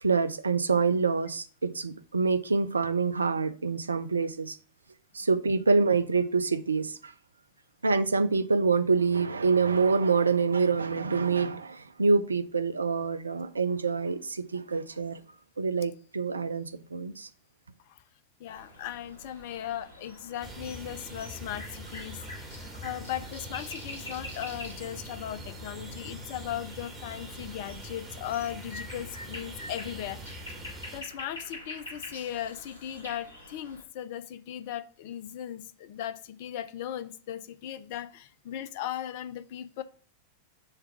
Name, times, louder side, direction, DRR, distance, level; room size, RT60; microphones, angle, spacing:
voice 1, 0.0-4.6 5.1-7.1 7.8-15.2 15.6-17.3, right 4 dB, 75° right, 0.5 m, -26 dB
voice 2, 18.4-30.2 30.9-39.8, left 11 dB, 50° left, 0.5 m, -37 dB
sound 1, 18.5-33.8, left 1 dB, 70° left, 2.1 m, -46 dB
sound 2, 20.4-31.0, right 1 dB, 15° right, 2.2 m, -43 dB
6.6 x 3.5 x 5.8 m
figure-of-eight pair, 90°, 0 cm